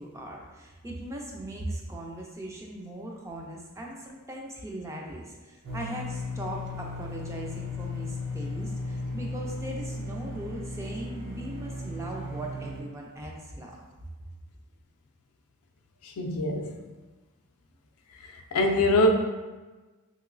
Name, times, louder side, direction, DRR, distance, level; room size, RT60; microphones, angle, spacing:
voice 1, 0.0-13.7, right 1 dB, 15° right, -1 dB, 0.3 m, -39 dB
sound 1, 5.6-12.8, left 2 dB, 60° right, 0.7 m, -36 dB
voice 2, 16.2-16.7 18.5-19.1, left 1 dB, 80° left, 3 dB, 0.4 m, -23 dB
2.9 x 2.9 x 2.5 m, 1.2 s
head